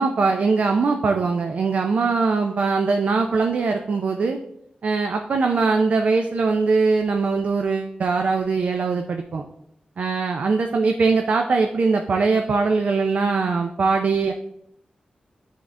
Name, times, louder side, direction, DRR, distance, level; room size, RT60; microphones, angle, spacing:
voice 1, 0.0-4.4 4.8-9.4 10.0-14.3, right 4 dB, 60° right, 4 dB, 0.5 m, -21 dB
10.0 x 3.6 x 3.6 m, 0.75 s
wide cardioid pair, 135°, 3 cm